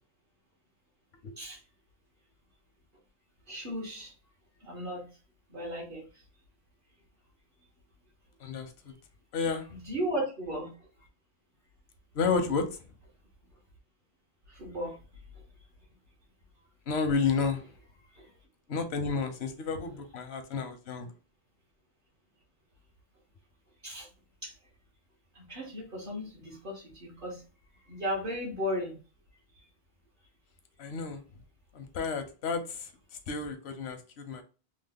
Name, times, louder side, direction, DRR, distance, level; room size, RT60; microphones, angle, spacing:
voice 1, 3.5-4.1 4.6-5.1 5.5-6.2 9.7-10.9 14.5-15.0 18.1-18.3 23.8-24.1 24.4-24.5 25.3-27.4 27.8-29.0 29.5-29.7, equal, 55° right, -4 dB, 1.0 m, -36 dB
voice 2, 8.4-9.0 9.3-9.7 12.1-12.6 16.9-17.6 18.7-21.1 30.8-31.2 31.7-32.9 33.3-34.4, left 5 dB, 85° left, 7 dB, 0.9 m, -31 dB
3.1 x 2.0 x 3.4 m, 0.35 s
omnidirectional pair, 1.0 m